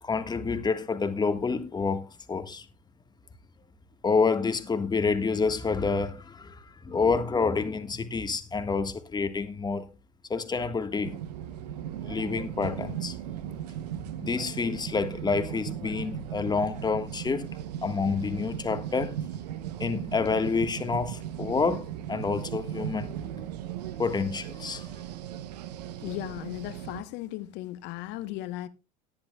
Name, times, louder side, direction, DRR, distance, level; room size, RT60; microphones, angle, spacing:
voice 1, 0.0-2.6 4.0-9.9 10.3-11.2 12.0-13.2 14.2-17.5 17.8-19.2 19.8-23.1 24.0-24.9, left 4 dB, 20° left, 1.6 m, -28 dB
sound 1, 11.0-27.0, right 10 dB, 80° right, 0.8 m, -37 dB
voice 2, 26.0-28.7, left 14 dB, 60° left, 1.1 m, -36 dB
18.0 x 10.5 x 2.3 m
hypercardioid pair, 85°, 21 cm